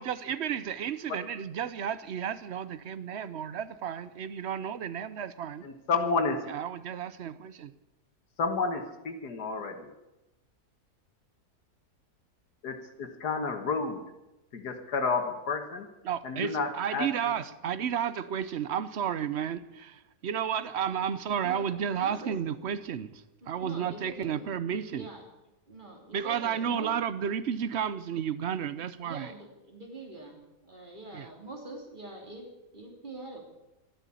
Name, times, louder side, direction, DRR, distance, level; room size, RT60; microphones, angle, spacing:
voice 1, 0.0-5.6 6.5-7.7 16.0-25.1 26.1-29.3 31.1-31.3, right 8 dB, 55° right, 0.8 m, -32 dB
voice 2, 5.6-6.4 8.4-9.9 12.6-14.0 14.5-15.9 16.2-17.3, left 4 dB, 75° left, 2.0 m, -31 dB
voice 3, 21.4-22.3 23.4-24.5 24.9-25.2 25.7-26.9 29.0-33.4, right 2 dB, 30° right, 3.1 m, -44 dB
13.0 x 12.5 x 8.5 m
omnidirectional pair, 1.7 m